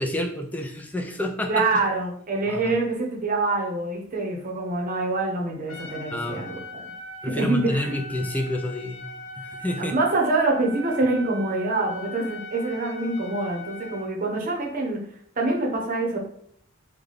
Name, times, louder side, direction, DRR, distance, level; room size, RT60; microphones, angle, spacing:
voice 1, 0.0-1.7 2.5-2.7 6.1-6.4 7.2-9.1 9.4-9.9, left 1 dB, 10° left, 3 dB, 0.4 m, -29 dB
voice 2, 1.5-6.8 7.3-7.9 9.8-15.0 15.4-16.2, right 2 dB, 40° right, 0 dB, 0.8 m, -25 dB
Trumpet, 5.7-14.1, left 1 dB, 85° left, 0.8 m, -40 dB
3.9 x 2.2 x 3.3 m, 0.64 s
head